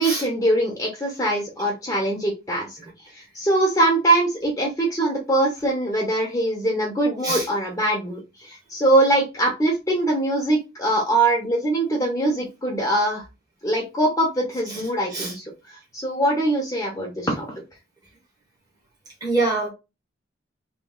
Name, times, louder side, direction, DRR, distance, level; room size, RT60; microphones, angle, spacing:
voice 1, 0.0-2.8 3.1-13.2 13.6-17.5, right 1 dB, 15° left, 0.8 m, -22 dB
voice 2, 19.2-19.7, right 3 dB, 20° right, 1.2 m, -24 dB
3.1 x 3.1 x 3.7 m
head